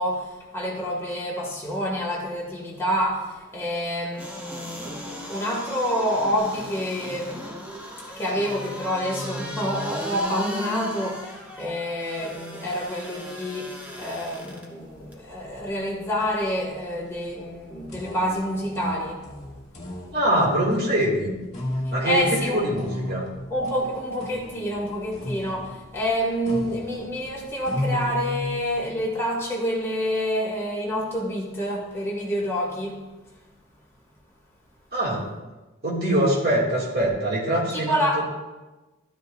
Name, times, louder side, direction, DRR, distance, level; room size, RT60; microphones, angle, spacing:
voice 1, 0.0-7.5 8.2-19.2 21.9-22.6 23.5-33.0 37.7-38.3, equal, 10° left, -4 dB, 2.2 m, -28 dB
sound 1, 4.1-14.6 15.1-15.2, equal, 5° right, 1.2 m, -36 dB
sound 2, 14.8-15.0 15.3-28.9, left 1 dB, 35° left, 2.1 m, -34 dB
voice 2, 20.1-21.4 21.9-23.3 34.9-35.2 35.8-38.0, right 1 dB, 45° right, -4 dB, 2.4 m, -23 dB
13.0 x 10.0 x 2.6 m, 1.1 s
head